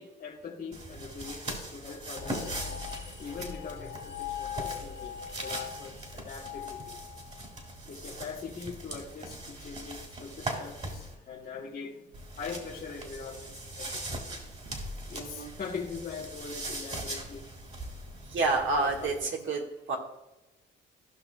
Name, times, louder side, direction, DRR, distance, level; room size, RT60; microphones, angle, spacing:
voice 1, 0.0-2.6 3.2-7.0 7.8-12.1 12.4-14.4 15.1-17.5 18.8-19.6, left 5 dB, 50° left, -3 dB, 1.3 m, -42 dB
sound 1, 0.7-11.1 12.1-19.2, right 1 dB, 35° right, 2.2 m, -41 dB
sound 2, 2.2-7.6, left 9 dB, 70° left, 2.0 m, -41 dB
voice 2, 15.2-15.5 18.3-20.0, right 3 dB, 75° right, 1 dB, 1.7 m, -29 dB
15.0 x 5.9 x 2.3 m, 1.0 s
cardioid pair, 90°, 20 cm